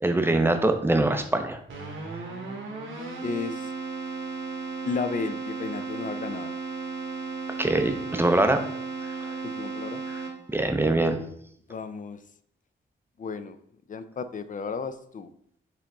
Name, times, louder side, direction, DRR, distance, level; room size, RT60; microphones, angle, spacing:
voice 1, 0.0-1.6 7.6-8.6 10.1-10.2 10.5-11.2, right 2 dB, 10° right, 7 dB, 0.5 m, -23 dB
Keyboard (musical), 1.7-10.7, right 4 dB, 75° right, 1.2 m, -35 dB
voice 2, 3.2-3.7 4.8-6.5 9.4-10.0 11.7-12.2 13.2-13.6 13.9-15.3, left 5 dB, 40° left, 10 dB, 0.4 m, -33 dB
4.8 x 3.0 x 3.5 m, 0.68 s
cardioid pair, 80°, 21 cm